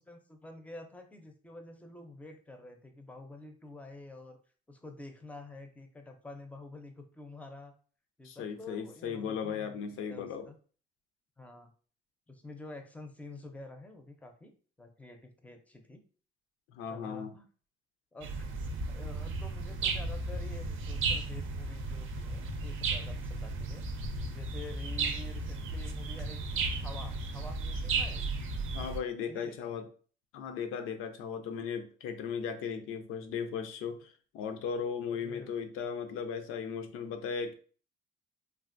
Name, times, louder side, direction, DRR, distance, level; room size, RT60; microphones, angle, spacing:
voice 1, 0.0-4.4 4.7-7.7 8.2-10.5 11.4-11.7 12.3-14.5 14.8-16.0 16.9-17.5 18.1-18.5 18.9-23.9 24.3-28.2 29.3-29.9 35.1-35.5, left 2 dB, 5° left, 5 dB, 0.5 m, -48 dB
voice 2, 8.2-10.5 16.7-17.3 28.7-29.9 30.3-37.6, left 6 dB, 90° left, 7 dB, 0.5 m, -37 dB
sound 1, 18.2-29.0, right 3 dB, 75° right, 0.5 m, -34 dB
3.3 x 2.4 x 2.5 m, 0.41 s
cardioid pair, 110°, 21 cm